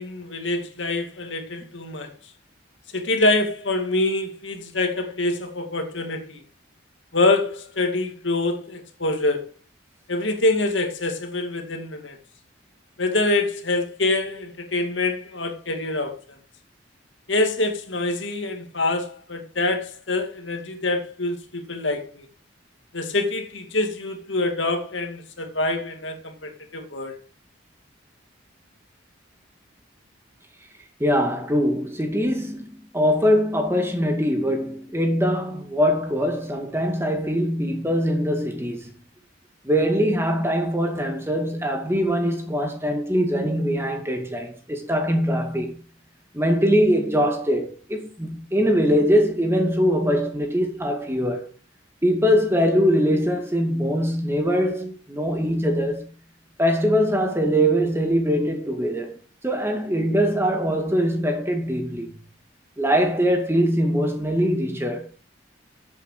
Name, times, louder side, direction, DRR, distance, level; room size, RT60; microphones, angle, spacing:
voice 1, 0.0-2.1 2.9-6.4 7.1-9.5 10.1-12.2 13.0-16.1 17.3-22.3 22.9-27.2, left 2 dB, 65° left, 2.4 m, -25 dB
voice 2, 31.0-38.9 39.6-45.8 46.3-51.5 52.0-56.1 56.6-59.2 59.4-62.1 62.8-65.1, equal, 10° right, 2.1 m, -22 dB
13.0 x 8.3 x 4.9 m
head